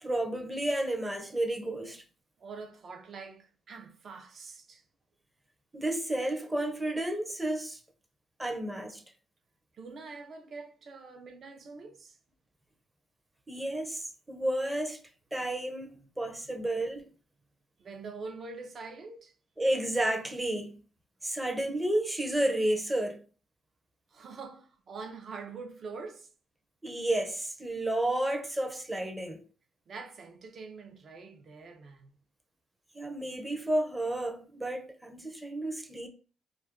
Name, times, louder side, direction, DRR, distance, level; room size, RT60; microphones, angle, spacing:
voice 1, 0.0-2.0 5.7-7.8 8.4-9.0 13.5-15.0 15.3-17.0 19.6-20.8 21.2-23.2 26.8-29.4 32.9-36.1, right 1 dB, 10° right, 0.6 m, -31 dB
voice 2, 2.4-4.8 9.7-12.2 16.0-16.1 17.8-19.3 24.1-26.3 29.9-32.2, right 4 dB, 50° right, 0.6 m, -44 dB
2.5 x 2.3 x 3.5 m
cardioid pair, 90°, 0 cm